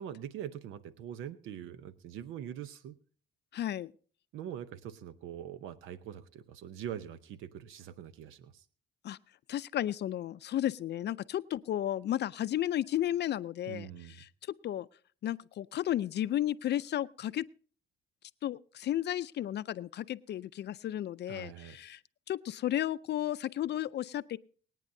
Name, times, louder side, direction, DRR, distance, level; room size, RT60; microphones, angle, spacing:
voice 1, 0.0-3.0 4.3-8.6 13.7-14.2 21.3-21.8, right 10 dB, 90° right, 0.7 m, -43 dB
voice 2, 3.5-3.9 9.0-9.2 9.5-14.3 14.6-14.9 15.2-17.5 18.4-22.0 22.3-24.4, left 12 dB, 60° left, 0.4 m, -33 dB
24.0 x 9.1 x 2.7 m
cardioid pair, 90°, 20 cm